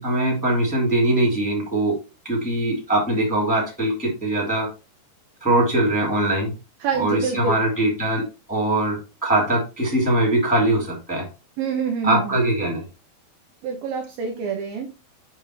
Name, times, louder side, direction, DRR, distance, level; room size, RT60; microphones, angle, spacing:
voice 1, 0.0-2.0 2.2-4.7 5.4-6.5 7.0-11.3 12.0-12.8, right 1 dB, 5° left, -3 dB, 1.7 m, -22 dB
voice 2, 6.8-7.6 11.6-12.3 13.6-14.9, right 6 dB, 75° right, 3 dB, 2.4 m, -26 dB
7.8 x 5.3 x 3.1 m, 0.29 s
omnidirectional pair, 4.9 m